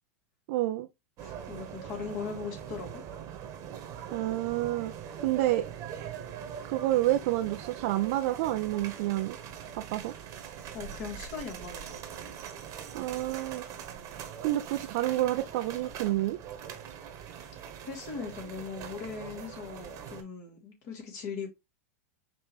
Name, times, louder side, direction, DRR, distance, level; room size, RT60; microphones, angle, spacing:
voice 1, 0.5-0.9 4.1-4.9 5.2-5.7 6.6-9.4 9.7-10.1 12.9-13.6 14.4-16.4, right 15 dB, 60° right, 0.4 m, -29 dB
voice 2, 1.2-3.0 10.7-12.0 17.9-21.5, left 5 dB, 50° left, 2.7 m, -39 dB
sound 1, 1.2-20.2, right 8 dB, 40° right, 1.1 m, -42 dB
5.2 x 3.0 x 3.1 m
hypercardioid pair, 110°, 8 cm